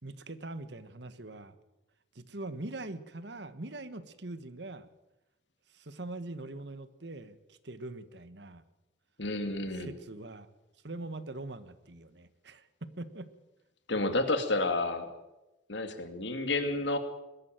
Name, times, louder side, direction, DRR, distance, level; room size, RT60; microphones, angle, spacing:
voice 1, 0.0-1.5 2.1-4.9 5.7-8.6 9.7-10.5 10.8-13.3, right 2 dB, 65° right, 13 dB, 1.4 m, -42 dB
voice 2, 9.2-9.9 13.9-15.1 15.7-17.0, left 2 dB, 70° left, 8 dB, 2.5 m, -30 dB
21.5 x 13.5 x 9.1 m, 1.0 s
head